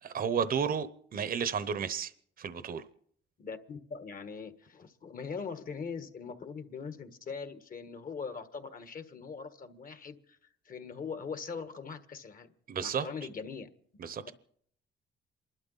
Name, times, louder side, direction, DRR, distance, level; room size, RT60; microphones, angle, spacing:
voice 1, 0.0-2.1 2.4-2.8 12.7-13.1 14.0-14.3, right 7 dB, 45° right, 0.9 m, -32 dB
voice 2, 3.4-10.4 10.6-12.5 12.8-13.7 14.3-14.4, left 5 dB, 45° left, 1.5 m, -41 dB
28.0 x 12.0 x 4.1 m
cardioid pair, 90°, 20 cm